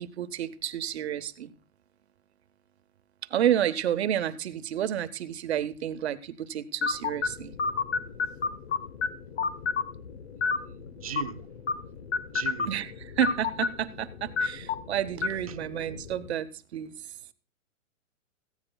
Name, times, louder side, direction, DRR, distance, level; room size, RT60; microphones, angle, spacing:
voice 1, 0.0-1.5 3.3-7.5 12.7-16.9, right 10 dB, 50° right, 1.0 m, -30 dB
sound 1, 6.8-16.3, left 5 dB, 55° left, 1.2 m, -32 dB
voice 2, 10.5-11.4 12.3-12.7 15.5-15.6, right 9 dB, 25° right, 0.5 m, -39 dB
18.0 x 15.0 x 2.3 m
hypercardioid pair, 165°, 41 cm